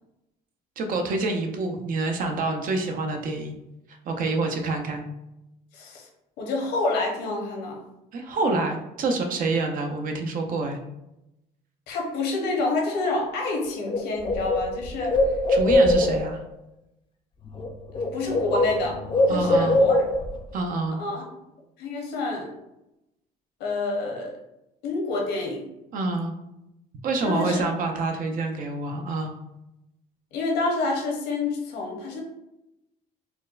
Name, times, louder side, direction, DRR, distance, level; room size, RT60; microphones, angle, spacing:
voice 1, 0.8-3.6 3.9-5.1 8.1-10.8 15.5-16.4 19.3-19.8 20.5-21.0 25.9-26.3 27.0-29.4, right 3 dB, 55° right, 4 dB, 0.6 m, -27 dB
voice 2, 5.7-6.1 6.4-7.8 11.9-15.2 17.9-19.0 19.3-20.0 21.0-21.2 21.8-22.5 23.6-24.3 24.8-25.7 27.2-27.6 30.3-32.2, left 3 dB, 85° left, 0 dB, 0.9 m, -28 dB
Bird, 13.5-13.6 13.9-16.4 17.4-17.7 17.9-20.4, left 1 dB, 30° left, 0.4 m, -22 dB
4.3 x 2.1 x 2.4 m, 0.90 s
cardioid pair, 110°, 17 cm